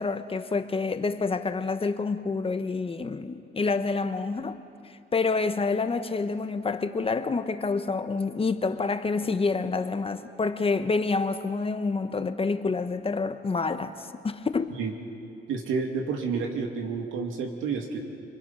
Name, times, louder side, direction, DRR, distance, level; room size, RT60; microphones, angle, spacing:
voice 1, 0.0-4.6 5.1-14.8, left 4 dB, 30° left, 1.1 m, -28 dB
voice 2, 15.5-18.0, right 5 dB, 90° right, 2.4 m, -30 dB
27.5 x 21.5 x 5.6 m
cardioid pair, 90°, 20 cm